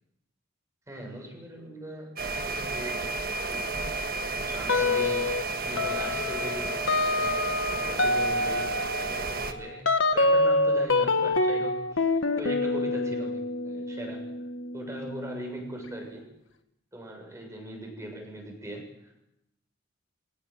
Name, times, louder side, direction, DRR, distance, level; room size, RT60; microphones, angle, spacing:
voice 1, 0.9-3.7 4.3-8.7 9.0-14.3 14.7-16.3 16.9-19.2, equal, 15° right, 2 dB, 7.1 m, -40 dB
sound 1, 2.2-9.5, right 3 dB, 50° right, 1.5 m, -32 dB
sound 2, 4.7-5.4 5.8-16.1, left 2 dB, 70° left, 1.6 m, -27 dB
23.0 x 19.0 x 7.9 m, 0.85 s
head